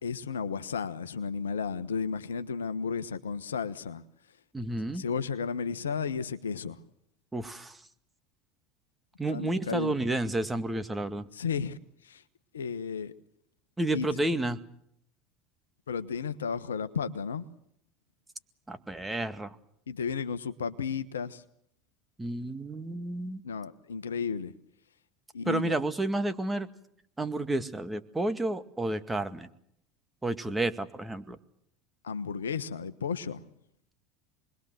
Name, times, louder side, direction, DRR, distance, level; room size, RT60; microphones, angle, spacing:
voice 1, 0.0-4.0 4.9-6.8 9.3-9.9 11.3-11.8 12.0-12.2 12.5-13.1 13.9-14.1 15.9-17.4 19.9-21.4 23.4-24.5 25.3-25.8 32.0-33.4, left 6 dB, 80° left, 1.1 m, -33 dB
voice 2, 4.5-5.0 7.3-7.8 9.2-11.3 13.8-14.6 18.7-19.6 22.2-23.4 25.5-26.7 27.2-29.5 30.2-31.4, right 2 dB, 10° right, 2.1 m, -31 dB
27.5 x 21.5 x 7.7 m
figure-of-eight pair, 70°, 0 cm